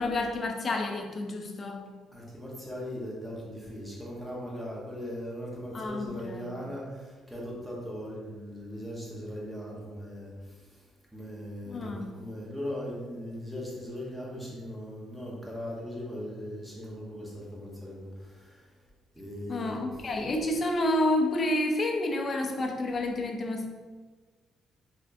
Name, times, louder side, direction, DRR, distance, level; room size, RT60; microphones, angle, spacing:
voice 1, 0.0-1.8 5.7-6.5 11.7-12.1 19.5-23.7, left 1 dB, 35° left, 3 dB, 0.5 m, -29 dB
voice 2, 2.1-10.6 11.1-18.6 19.1-19.9, equal, 5° right, -5 dB, 1.0 m, -39 dB
3.6 x 3.4 x 2.6 m, 1.4 s
cardioid pair, 115°, 0 cm